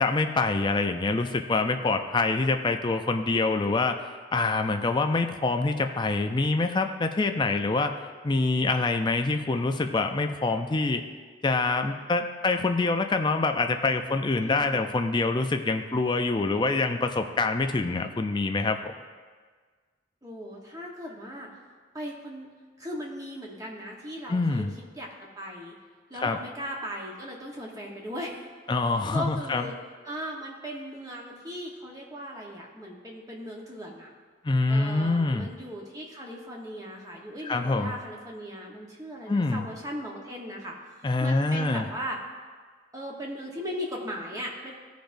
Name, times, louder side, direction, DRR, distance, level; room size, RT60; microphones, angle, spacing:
voice 1, 0.0-4.0 4.3-7.9 8.2-11.0 11.4-18.9 24.3-24.7 26.1-26.4 28.7-29.7 34.4-35.5 37.4-37.9 39.3-39.7 41.0-41.9, left 3 dB, 25° left, 6 dB, 0.4 m, -25 dB
voice 2, 14.4-14.8 20.2-21.5 21.9-22.5 22.8-24.6 25.0-25.7 26.1-28.4 28.9-29.7 30.0-34.1 34.7-40.7 41.2-42.2 42.9-44.7, equal, 20° right, -1 dB, 1.2 m, -38 dB
15.5 x 5.1 x 2.6 m, 1.5 s
head